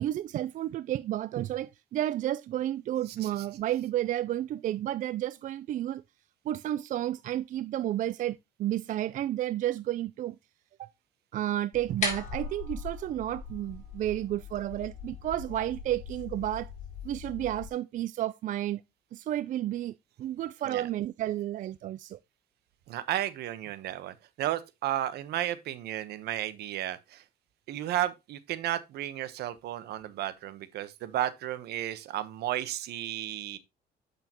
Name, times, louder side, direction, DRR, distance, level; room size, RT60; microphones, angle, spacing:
voice 1, 0.0-6.0 6.5-10.4 10.8-10.9 11.3-16.7 17.0-18.8 19.1-22.2, right 13 dB, 50° right, 0.4 m, -31 dB
sound 1, 11.7-17.7, left 5 dB, 45° left, 5.5 m, -39 dB
voice 2, 22.9-27.2 27.7-33.6, right 13 dB, 75° right, 1.0 m, -33 dB
8.2 x 6.7 x 2.9 m
cardioid pair, 110°, 17 cm